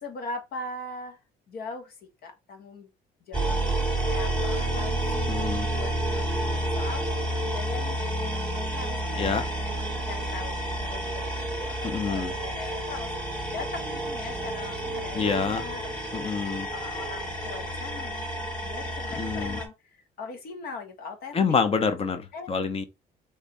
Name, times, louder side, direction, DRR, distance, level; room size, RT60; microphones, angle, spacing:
voice 1, 0.0-1.2 1.5-2.9 3.2-3.6 4.0-7.0 7.4-16.3 16.7-21.4 22.3-22.5, left 3 dB, 65° left, 1.5 m, -40 dB
sound 1, 3.3-19.6, right 1 dB, 5° left, 2.0 m, -30 dB
voice 2, 5.3-5.7 9.2-9.4 11.8-12.3 15.1-15.6 16.1-16.7 19.2-19.6 21.3-22.8, left 5 dB, 35° left, 0.9 m, -27 dB
3.7 x 3.3 x 4.2 m
cardioid pair, 110°, 17 cm